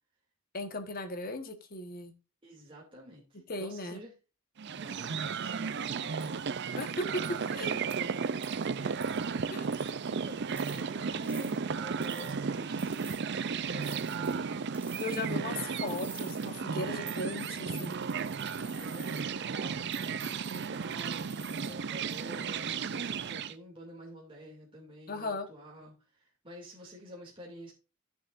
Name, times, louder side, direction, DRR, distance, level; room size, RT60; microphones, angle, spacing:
voice 1, 0.5-2.1 3.5-4.0 6.8-7.2 7.5-7.8 9.5-9.7 15.0-18.0 25.1-25.5, left 2 dB, 45° left, 7 dB, 1.4 m, -37 dB
voice 2, 2.4-4.1 4.6-6.4 7.1-8.3 9.7-13.3 13.6-14.8 18.7-21.3 21.6-27.7, equal, 25° right, -3 dB, 2.6 m, -49 dB
sound 1, 4.6-23.5, right 5 dB, 50° right, 0.5 m, -34 dB
sound 2, 6.2-6.3 6.8-6.9 7.2-7.5 7.9-8.0 8.4-8.7 9.0-9.2 9.7-10.1 10.5-10.8 11.2-11.5 12.0-12.4 12.8-13.2 13.8-14.4 14.7-15.4 15.7-16.5 17.1-19.2 19.9-21.7 22.1-22.5, right 4 dB, 10° right, 1.7 m, -49 dB
13.0 x 6.8 x 2.6 m, 0.30 s
head